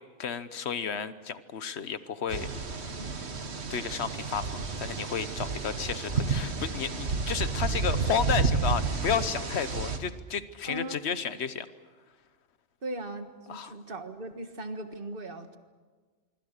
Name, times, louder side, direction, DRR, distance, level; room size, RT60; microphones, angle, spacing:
voice 1, 0.2-2.5 3.7-11.7 13.5-13.8, left 7 dB, 80° left, 13 dB, 1.3 m, -32 dB
sound 1, 2.3-10.0, right 4 dB, 80° right, 1.8 m, -31 dB
voice 2, 10.7-11.0 12.8-15.6, right 1 dB, 55° right, 7 dB, 1.8 m, -38 dB
25.0 x 25.0 x 6.7 m, 1.4 s
omnidirectional pair, 1.1 m